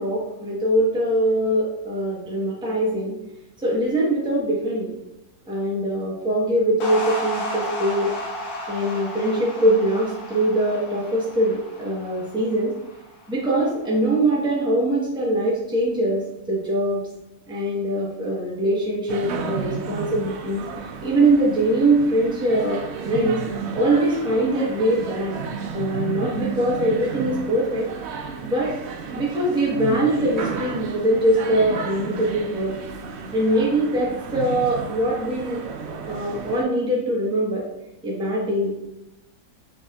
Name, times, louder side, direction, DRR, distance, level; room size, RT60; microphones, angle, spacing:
voice 1, 0.0-3.1 3.6-5.0 5.5-8.1 8.7-12.7 13.3-17.0 17.5-20.6 21.0-23.4 23.7-25.4 25.7-27.9 28.4-28.7 29.1-32.7 33.3-35.6 36.1-37.6 38.0-38.8, right 1 dB, 5° right, -6 dB, 0.7 m, -22 dB
sound 1, 6.8-13.3, left 1 dB, 75° left, 1.4 m, -33 dB
sound 2, 19.1-36.6, right 5 dB, 75° right, 0.6 m, -32 dB
5.0 x 3.4 x 2.3 m, 0.92 s
omnidirectional pair, 1.6 m